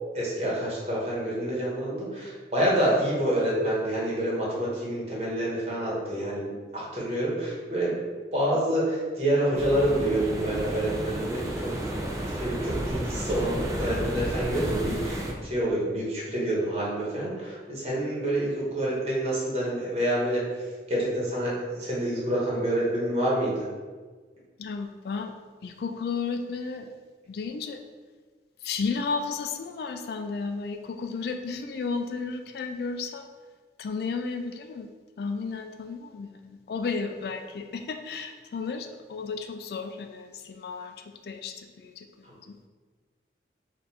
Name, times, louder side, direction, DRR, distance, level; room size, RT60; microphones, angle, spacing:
voice 1, 0.1-8.0 8.3-11.9 12.3-20.4 20.9-23.7, right 1 dB, 35° right, -6 dB, 1.2 m, -27 dB
sound 1, 9.5-15.3, right 1 dB, 15° right, 0.4 m, -32 dB
voice 2, 24.6-25.3 25.6-26.9 27.3-27.8 28.6-33.2 33.8-34.9 35.2-40.9 41.2-42.1 42.5-42.6, left 4 dB, 60° left, 6 dB, 0.3 m, -33 dB
4.3 x 2.6 x 4.0 m, 1.4 s
head